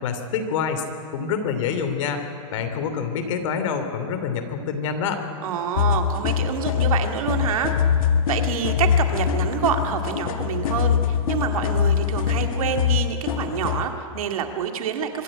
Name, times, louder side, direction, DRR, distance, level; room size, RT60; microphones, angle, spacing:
voice 1, 0.0-0.8 1.1-2.2 2.5-5.2, left 6 dB, 60° left, 7 dB, 2.8 m, -26 dB
voice 2, 5.4-7.7 8.3-15.2, right 8 dB, 80° right, 5 dB, 2.3 m, -27 dB
sound 1, 5.8-13.8, left 8 dB, 80° left, 1.9 m, -23 dB
24.5 x 13.0 x 9.8 m, 2.5 s
supercardioid pair, 155°, 18 cm